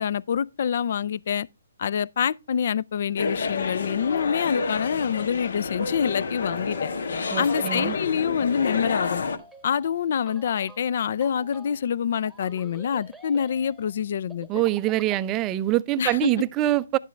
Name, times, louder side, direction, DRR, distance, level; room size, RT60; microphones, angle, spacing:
voice 1, 0.0-1.5 1.8-6.9 7.4-9.2 9.6-14.6 16.0-16.3, left 8 dB, 55° left, 0.4 m, -26 dB
sound 1, 3.2-9.4, left 4 dB, 70° left, 1.5 m, -29 dB
sound 2, 6.4-15.2, right 1 dB, ahead, 1.2 m, -50 dB
voice 2, 7.3-8.0 14.5-17.0, right 15 dB, 20° right, 0.4 m, -24 dB
11.5 x 7.3 x 3.2 m
hypercardioid pair, 155°, 0 cm